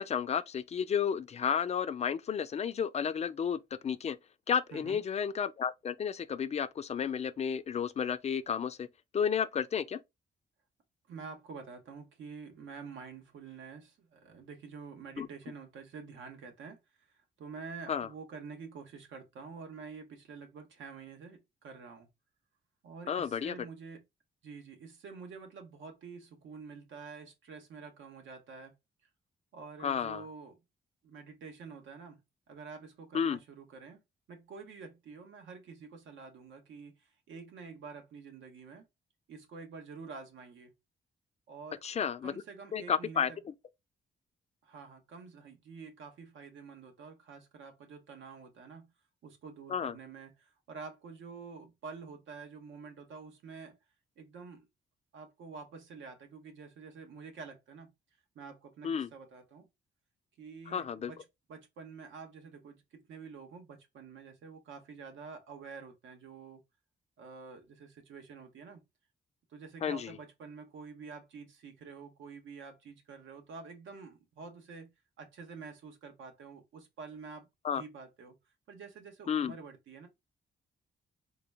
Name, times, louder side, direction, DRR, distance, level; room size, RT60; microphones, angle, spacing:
voice 1, 0.0-4.2 4.5-8.9 9.1-10.0 15.2-15.3 17.9-18.1 23.1-23.5 29.8-30.2 33.1-33.4 41.8-42.3 42.7-43.5 49.7-49.9 58.8-59.1 60.7-61.1 69.8-70.2 77.6-77.8 79.3-79.5, left 7 dB, 35° left, 0.4 m, -32 dB
voice 2, 4.7-5.0 11.1-22.1 22.8-24.0 24.4-28.7 29.5-30.6 31.0-32.2 32.5-34.0 34.3-38.8 39.3-40.7 41.5-41.8 42.2-43.4 44.6-48.9 49.2-53.8 54.2-54.7 55.1-57.9 58.3-59.7 60.4-66.6 67.2-68.8 69.5-74.9 75.2-78.3 78.7-80.1, right 5 dB, 85° right, 1.0 m, -48 dB
3.9 x 2.2 x 3.3 m
cardioid pair, 125°, 19 cm